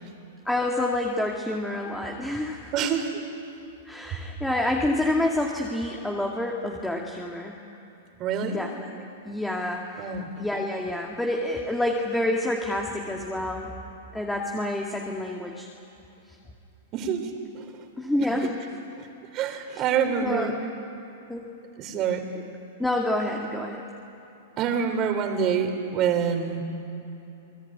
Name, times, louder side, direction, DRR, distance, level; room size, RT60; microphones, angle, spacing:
voice 1, 0.5-2.7 3.8-7.5 8.4-13.7 14.1-15.7 18.0-18.6 19.8-19.9 20.2-20.5 21.3-21.5 22.3-22.4 22.8-23.8, left 1 dB, 5° left, 0 dB, 2.1 m, -28 dB
voice 2, 2.7-3.1 8.2-8.6 10.0-10.3 16.9-17.3 19.3-20.5 21.8-22.3 24.6-26.6, right 7 dB, 35° right, 6 dB, 3.6 m, -26 dB
28.5 x 20.0 x 9.5 m, 2.9 s
hypercardioid pair, 130°, 0 cm